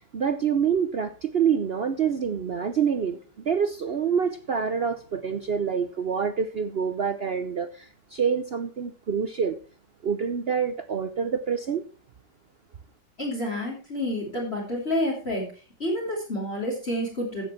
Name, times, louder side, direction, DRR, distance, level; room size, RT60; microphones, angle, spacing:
voice 1, 0.0-3.2 3.5-9.6 10.0-11.8, right 7 dB, 80° right, 10 dB, 0.5 m, -26 dB
voice 2, 13.2-15.5 15.8-17.5, left 1 dB, 35° left, -3 dB, 3.6 m, -29 dB
16.0 x 7.0 x 4.5 m, 0.35 s
omnidirectional pair, 2.0 m